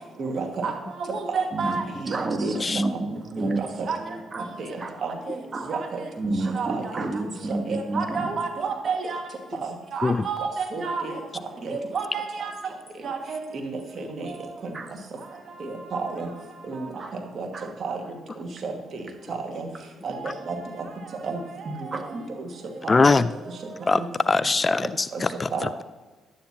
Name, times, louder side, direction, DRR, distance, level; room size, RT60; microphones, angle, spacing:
voice 1, 0.2-2.5 2.9-3.0 3.4-5.4 5.7-6.1 6.5-6.9 7.5-9.2 9.6-11.1 11.6-12.5 13.0-14.7 15.6-16.3 16.7-17.5 17.8-18.0 18.4-19.7 20.0-20.9 21.2-22.5 22.8-23.2 23.9-24.1 25.1-25.2 25.5-25.7, right 4 dB, 55° right, 3 dB, 1.9 m, -31 dB
voice 2, 1.5-4.4 4.8-4.9 5.5-5.7 6.2-8.3 14.7-14.9 17.0-17.1 17.5-17.7 21.9-22.0, right 2 dB, 40° right, 6 dB, 1.4 m, -30 dB
voice 3, 22.9-23.3 23.9-25.7, left 3 dB, 35° left, 15 dB, 0.4 m, -22 dB
11.5 x 9.7 x 2.9 m, 1.2 s
supercardioid pair, 55°, 0 cm